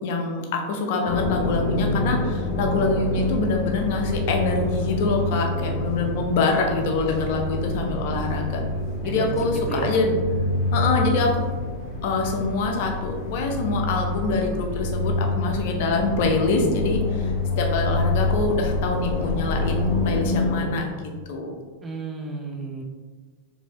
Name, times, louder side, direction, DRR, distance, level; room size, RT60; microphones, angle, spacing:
voice 1, 0.0-8.6 9.0-10.1 10.7-11.4 12.0-17.3 17.6-20.9 21.3-21.5, left 3 dB, 50° left, 2 dB, 0.6 m, -25 dB
sound 1, 1.1-20.7, left 2 dB, 30° left, 1.1 m, -26 dB
voice 2, 9.0-9.9 21.8-22.8, right 2 dB, 15° right, 2 dB, 0.6 m, -32 dB
4.3 x 2.7 x 3.0 m, 1.4 s
figure-of-eight pair, 90°, 0 cm